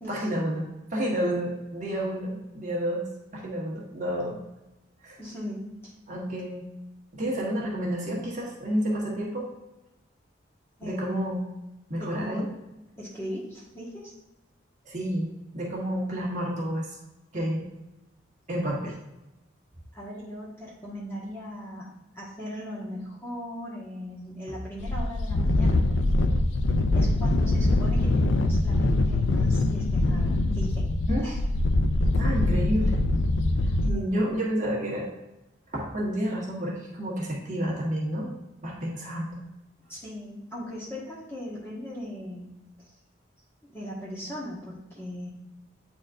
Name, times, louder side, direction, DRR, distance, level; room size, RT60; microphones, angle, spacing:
voice 1, 0.1-3.0 3.3-4.4 5.0-5.2 6.1-6.7 7.1-9.5 10.8-11.4 11.9-12.4 14.8-17.0 17.3-17.7 18.5-19.0 31.1-31.2 32.2-33.0 33.6-35.1 35.7-38.3 38.6-39.4, equal, 40° right, -4 dB, 1.4 m, -30 dB
voice 2, 5.2-5.9 10.8-11.2 12.0-12.4 13.0-14.1 19.9-26.4 26.9-30.9 31.2-31.4 33.8-34.0 39.9-42.5 43.7-45.3, equal, 15° left, -6 dB, 1.4 m, -38 dB
sound 1, 24.8-33.9, left 2 dB, 75° left, 0.4 m, -23 dB
8.8 x 4.3 x 2.5 m, 0.98 s
head